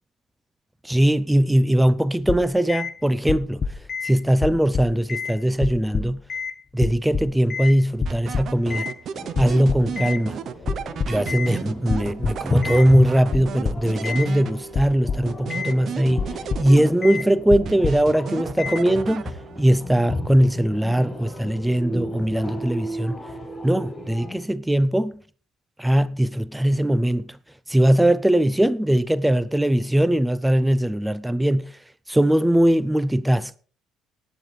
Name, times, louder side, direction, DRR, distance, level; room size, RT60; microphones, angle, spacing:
voice 1, 0.8-3.6 4.0-6.2 6.7-8.9 9.4-10.4 11.1-16.3 16.6-19.3 19.6-23.2 23.6-25.2 25.8-27.4 27.7-31.7 32.1-33.6, right 1 dB, 5° right, 0.5 m, -20 dB
sound 1, 2.3-2.9 3.3-4.1 4.4-5.3 5.6-6.5 6.8-7.7 8.0-8.9 9.4-10.2 10.7-11.5 11.9-12.9 13.3-14.3 14.7-15.7 16.1-16.8 17.0-17.3 17.5-18.1 18.6-18.8, left 5 dB, 40° left, 0.7 m, -27 dB
sound 2, 8.1-14.9 15.2-17.3 17.7-19.7, right 8 dB, 55° right, 0.7 m, -34 dB
sound 3, 9.1-24.3, left 2 dB, 25° left, 5.7 m, -33 dB
19.0 x 9.1 x 3.3 m
cardioid pair, 110°, 0 cm